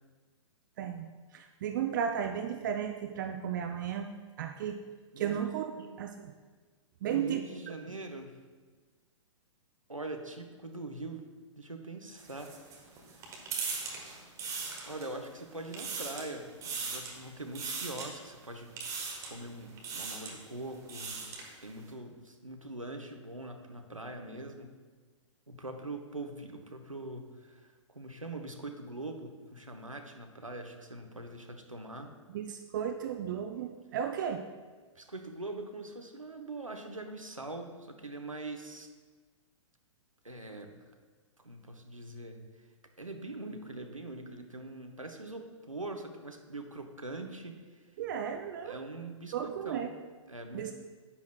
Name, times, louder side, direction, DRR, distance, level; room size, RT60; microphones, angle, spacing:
voice 1, 0.8-1.1 1.3-4.1 4.4-4.8 5.2-6.3 7.0-7.4 32.3-34.4 48.0-48.8 49.3-49.9 50.5-50.7, right 8 dB, 40° right, 6 dB, 0.4 m, -34 dB
voice 2, 7.1-8.4 9.9-11.3 11.6-12.5 14.9-18.7 19.3-21.3 21.6-24.7 25.5-32.1 34.9-38.9 40.2-40.8 41.4-42.4 43.0-47.8 48.6-49.9 50.3-50.7, right 2 dB, 90° right, 4 dB, 1.0 m, -43 dB
sound 1, 12.2-15.3 15.6-16.3 16.6-17.2 17.5-18.1 18.8-19.4 19.8-20.4 20.7-21.5, right 5 dB, 20° right, 1.4 m, -39 dB
9.8 x 9.2 x 2.3 m, 1.4 s
figure-of-eight pair, 115°, 17 cm